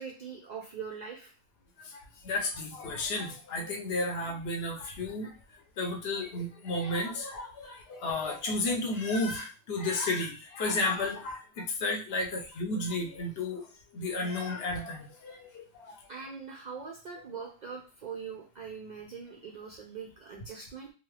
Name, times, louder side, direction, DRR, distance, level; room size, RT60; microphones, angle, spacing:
voice 1, 0.0-1.3 16.1-20.9, right 6 dB, 65° right, 0 dB, 0.4 m, -42 dB
voice 2, 1.8-5.3 5.8-16.0, left 2 dB, 60° left, 2 dB, 0.9 m, -33 dB
2.7 x 2.4 x 3.2 m, 0.36 s
omnidirectional pair, 1.2 m